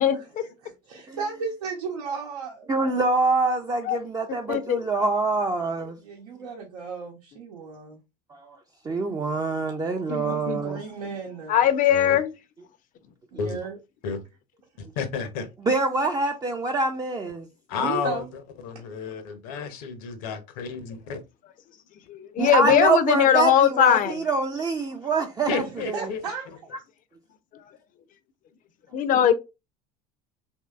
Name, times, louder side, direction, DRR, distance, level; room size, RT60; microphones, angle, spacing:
voice 1, 0.0-0.4 3.8-4.0 4.5-4.8 10.1-10.6 11.5-12.3 22.1-24.2 28.9-29.3, left 9 dB, 45° left, 0.5 m, -20 dB
voice 2, 0.6-2.7 6.0-8.0 10.2-11.6 13.3-13.8 17.7-18.3 25.6-26.5, right 5 dB, 80° right, 0.8 m, -35 dB
voice 3, 2.7-6.0 8.3-8.6 8.8-10.8 15.7-17.5 22.4-26.1, right 3 dB, 20° right, 0.4 m, -25 dB
voice 4, 14.8-15.5 17.7-21.2 25.5-26.2, left 6 dB, 70° left, 0.8 m, -31 dB
2.9 x 2.7 x 2.3 m
hypercardioid pair, 75°, 20 cm